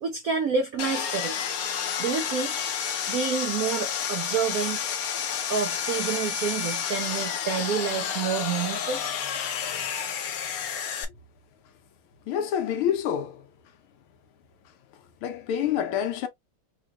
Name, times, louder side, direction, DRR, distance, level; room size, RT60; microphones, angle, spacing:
voice 1, 0.0-1.4 2.0-2.6 3.1-4.8 5.5-9.0, right 6 dB, 90° right, 0.7 m, -28 dB
Sawing, 0.8-11.0, left 8 dB, 65° left, 0.9 m, -30 dB
voice 2, 12.3-13.5 15.2-16.3, left 9 dB, 80° left, 1.7 m, -27 dB
4.9 x 2.3 x 2.4 m
omnidirectional pair, 2.3 m